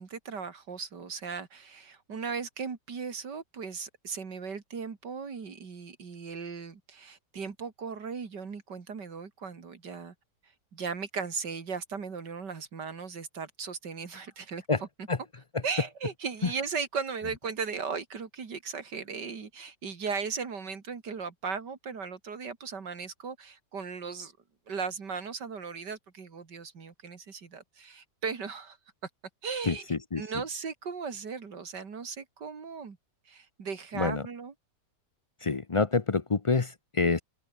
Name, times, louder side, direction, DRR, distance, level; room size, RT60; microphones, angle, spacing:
voice 1, 0.0-10.1 10.7-14.6 15.0-15.1 15.6-24.3 24.7-28.8 29.0-29.1 29.4-29.9 30.2-33.0 33.3-34.5, right 5 dB, 70° right, 3.0 m, -37 dB
voice 2, 29.7-30.2 33.9-34.2 35.4-37.2, left 4 dB, 50° left, 0.3 m, -27 dB
omnidirectional pair, 1.9 m